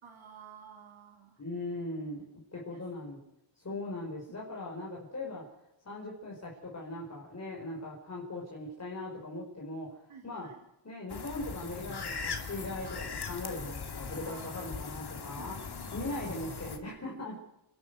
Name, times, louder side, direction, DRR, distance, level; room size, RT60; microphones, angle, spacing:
voice 1, 0.0-1.4 2.5-3.1 3.7-4.0 10.1-10.6 14.2-14.8 15.1-15.9, right 6 dB, 90° right, 3 dB, 3.3 m, -53 dB
voice 2, 1.4-2.2 2.5-3.2 3.6-5.5 5.9-10.5 10.8-15.6 15.9-17.4, left 2 dB, 35° left, -2 dB, 5.1 m, -39 dB
sound 1, 11.1-16.8, left 5 dB, 55° left, 2.7 m, -40 dB
30.0 x 12.0 x 8.1 m, 0.93 s
wide cardioid pair, 120°, 46 cm